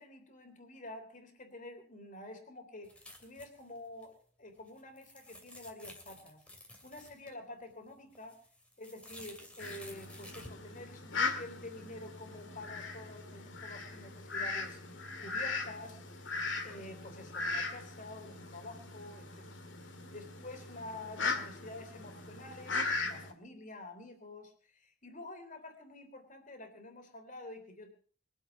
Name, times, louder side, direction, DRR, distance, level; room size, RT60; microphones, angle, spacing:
voice 1, 0.0-2.9 3.2-6.4 6.8-8.4 8.8-16.3 16.6-19.5 19.8-27.9, left 2 dB, 40° left, 6 dB, 3.3 m, -49 dB
sound 1, 2.8-4.1 4.6-7.3 7.7-10.5, left 1 dB, 5° left, 2.7 m, -53 dB
Fowl, 9.6-23.3, left 4 dB, 70° left, 2.1 m, -39 dB
23.5 x 7.9 x 5.9 m, 0.43 s
head